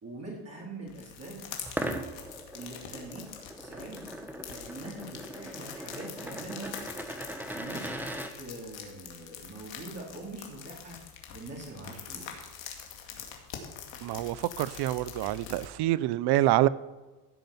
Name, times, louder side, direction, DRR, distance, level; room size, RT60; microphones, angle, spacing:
voice 1, 0.0-1.5 2.5-3.3 3.6-4.1 4.5-6.8 7.5-11.0 11.3-12.5, right 2 dB, 30° right, 3.8 m, -43 dB
sound 1, 0.9-15.6, left 8 dB, 75° left, 2.3 m, -45 dB
sound 2, 1.6-8.3, right 1 dB, 5° right, 1.4 m, -39 dB
voice 2, 14.0-16.7, right 15 dB, 60° right, 0.7 m, -26 dB
15.5 x 5.3 x 7.2 m
supercardioid pair, 80°, 45 cm